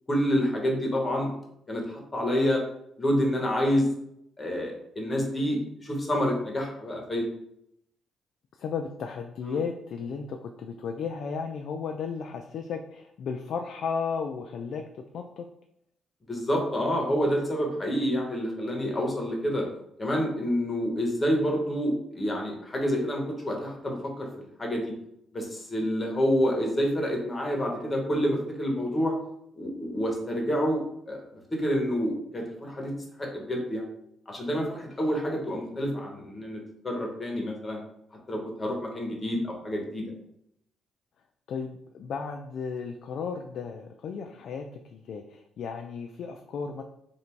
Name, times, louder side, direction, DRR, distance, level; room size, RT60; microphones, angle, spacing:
voice 1, 0.1-1.3 1.7-2.6 3.0-3.9 4.4-7.3 9.4-9.6 16.2-19.6 20.0-24.9 25.3-29.1 29.5-31.2 31.5-32.9 33.2-33.9 34.3-37.8 38.3-40.1, equal, 25° left, 0 dB, 1.2 m, -28 dB
voice 2, 8.6-14.8 15.1-15.5 41.5-44.7 44.9-46.8, left 6 dB, 70° left, 4 dB, 0.3 m, -34 dB
3.3 x 2.7 x 4.5 m, 0.75 s
cardioid pair, 90°, 0 cm